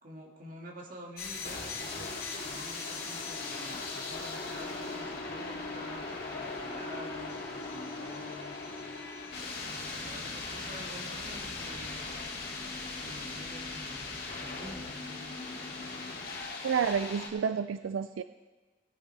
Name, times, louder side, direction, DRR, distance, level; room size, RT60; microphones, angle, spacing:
voice 1, 0.0-9.0 9.6-12.1 12.8-15.4, equal, 45° right, 0 dB, 2.0 m, -48 dB
sound 1, 1.2-17.3, left 3 dB, 50° left, 2.3 m, -39 dB
voice 2, 16.6-18.2, right 6 dB, 85° right, 12 dB, 0.4 m, -30 dB
18.0 x 10.5 x 3.3 m, 1.3 s
head